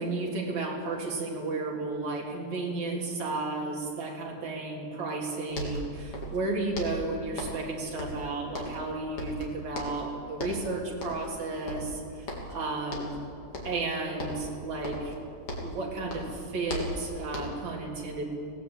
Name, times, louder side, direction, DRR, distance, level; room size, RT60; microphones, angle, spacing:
voice 1, 0.0-13.2 13.6-15.1 15.6-18.2, right 3 dB, 65° right, -2 dB, 4.7 m, -33 dB
sound 1, 5.2-5.3 5.5-6.5 6.7-7.7 8.0-8.9 9.2-10.1 10.4-10.7 11.0-11.4 11.7-12.6 12.9-13.2 13.5-13.9 14.2-15.8 16.1-17.7, left 1 dB, 50° left, 4.1 m, -37 dB
23.0 x 17.5 x 9.0 m, 2.4 s
omnidirectional pair, 3.4 m